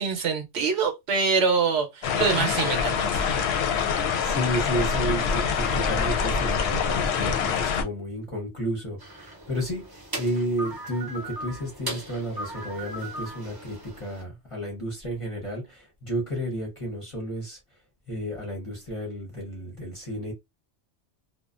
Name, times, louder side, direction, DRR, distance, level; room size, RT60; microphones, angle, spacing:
voice 1, 0.0-3.3, right 5 dB, 70° right, 0.9 m, -25 dB
sound 1, 2.0-7.8, left 6 dB, 70° left, 0.8 m, -25 dB
voice 2, 4.2-17.6 18.1-20.3, right 1 dB, 35° left, 0.7 m, -32 dB
sound 2, 9.0-14.2, right 1 dB, 25° right, 0.6 m, -38 dB
2.4 x 2.1 x 2.3 m
omnidirectional pair, 1.2 m